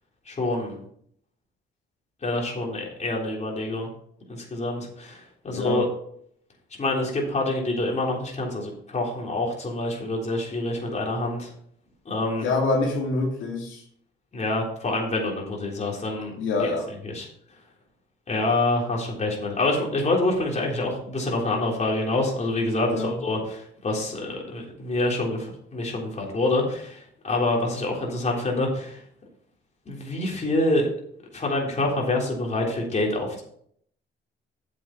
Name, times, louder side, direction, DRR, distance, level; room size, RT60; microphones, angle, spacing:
voice 1, 0.3-0.8 2.2-3.9 4.3-5.9 6.8-11.5 12.1-12.4 14.3-16.7 17.0-17.3 18.3-29.0 29.9-30.9 31.3-33.4, left 2 dB, 35° left, -1 dB, 3.6 m, -26 dB
voice 2, 5.5-5.8 12.4-13.8 16.4-16.9 22.9-23.1, left 3 dB, 80° left, -2 dB, 2.5 m, -26 dB
8.3 x 7.6 x 4.6 m, 0.65 s
cardioid pair, 90°, 20 cm